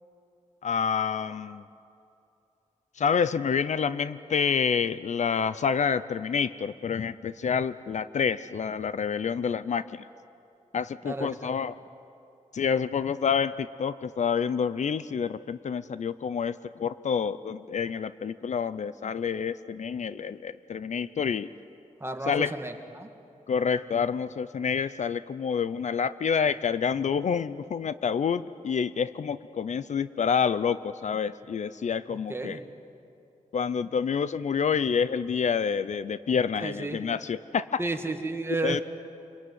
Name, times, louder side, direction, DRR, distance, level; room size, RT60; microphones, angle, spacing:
voice 1, 0.6-1.6 3.0-10.0 10.7-11.7 12.5-21.5 22.3-22.5 23.5-32.6 33.5-37.8 38.6-38.8, left 6 dB, 60° left, 15 dB, 0.6 m, -28 dB
voice 2, 11.0-11.6 22.0-23.1 32.1-32.6 36.6-37.0 37.8-38.8, right 2 dB, 20° right, 5 dB, 1.7 m, -32 dB
27.0 x 23.0 x 9.4 m, 2.7 s
wide cardioid pair, 165°, 14 cm